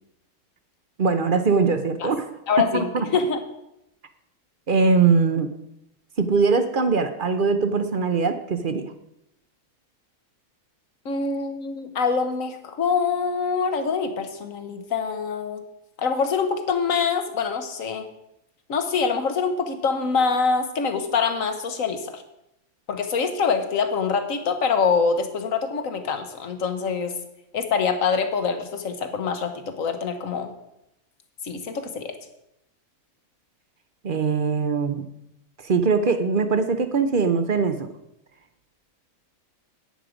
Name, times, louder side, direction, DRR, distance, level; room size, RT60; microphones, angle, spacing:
voice 1, 1.0-2.3 2.7-3.0 4.7-5.5 6.2-8.9 34.0-35.0 35.6-37.9, right 4 dB, 45° right, 9 dB, 0.8 m, -21 dB
voice 2, 2.5-3.4 11.0-15.6 16.0-18.0 18.7-22.2 22.9-27.1 27.5-30.5 31.4-32.1, left 5 dB, 65° left, 8 dB, 1.6 m, -25 dB
10.0 x 9.4 x 5.0 m, 0.84 s
omnidirectional pair, 1.5 m